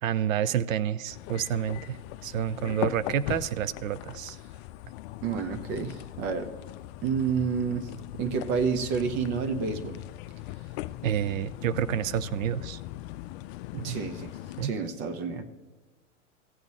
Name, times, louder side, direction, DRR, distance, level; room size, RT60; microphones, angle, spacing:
voice 1, 0.0-4.4 11.0-12.8 13.8-14.0 14.6-14.7, right 9 dB, 85° right, 17 dB, 0.5 m, -29 dB
sound 1, 1.1-14.7, left 16 dB, 55° left, 0.5 m, -39 dB
voice 2, 5.2-6.5 7.0-10.0 13.7-15.4, right 6 dB, 55° right, 8 dB, 1.1 m, -30 dB
16.0 x 7.1 x 4.1 m, 1.2 s
hypercardioid pair, 105°, 39 cm